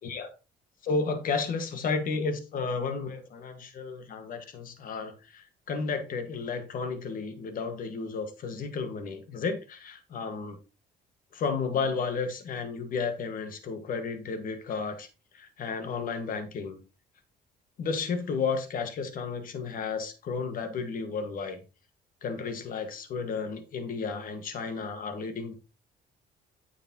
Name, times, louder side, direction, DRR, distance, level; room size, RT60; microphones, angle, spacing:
voice 1, 0.0-0.3 0.8-10.6 11.3-15.1 15.3-16.8 17.8-21.6 22.2-25.5, left 4 dB, 55° left, 1.8 m, -32 dB
9.1 x 7.3 x 3.0 m
cardioid pair, 110°, 17 cm